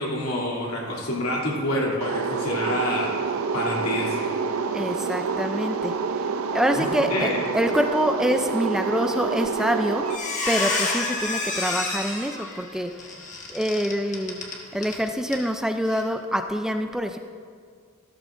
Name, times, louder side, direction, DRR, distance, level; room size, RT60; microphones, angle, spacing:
voice 1, 0.0-3.1 3.5-4.3 6.7-7.4, left 1 dB, 85° left, -3 dB, 2.8 m, -27 dB
sound 1, 2.0-10.2, right 5 dB, 75° right, 0.5 m, -27 dB
voice 2, 4.7-5.9 6.5-10.1 10.5-12.9 13.5-14.4 14.7-17.2, equal, 5° right, 6 dB, 0.4 m, -25 dB
Squeak, 9.5-9.7 10.0-15.0 15.3-15.5 15.9-16.0, left 3 dB, 35° left, 1.5 m, -29 dB
15.0 x 13.0 x 2.6 m, 2.1 s
head